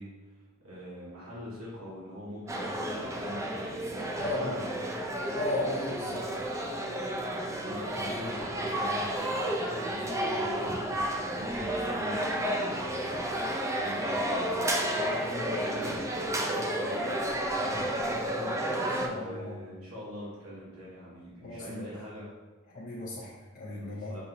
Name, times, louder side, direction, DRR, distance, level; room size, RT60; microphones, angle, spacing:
voice 1, 0.0-5.0 7.7-22.3 23.8-24.2, left 1 dB, 85° right, -8 dB, 1.2 m, -43 dB
sound 1, 2.5-19.1, right 1 dB, 15° right, 0.4 m, -31 dB
voice 2, 4.2-4.6 5.3-6.3 18.9-19.5 21.4-21.9 22.7-24.2, left 2 dB, 40° left, -6 dB, 0.6 m, -35 dB
5.6 x 2.9 x 2.6 m, 1.3 s
head